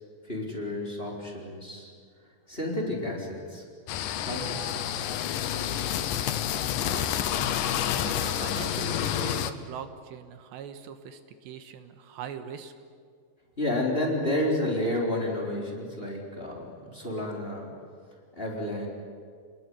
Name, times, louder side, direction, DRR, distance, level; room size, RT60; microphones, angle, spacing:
voice 1, 0.2-1.9 2.5-3.6 4.2-5.2 13.6-17.7 18.4-18.9, left 1 dB, 15° left, -1 dB, 3.8 m, -31 dB
sound 1, 3.9-9.5, left 10 dB, 70° left, 2.1 m, -29 dB
voice 2, 6.7-7.2 7.9-12.7, right 8 dB, 80° right, 8 dB, 3.3 m, -41 dB
30.0 x 20.5 x 9.7 m, 2.2 s
omnidirectional pair, 5.1 m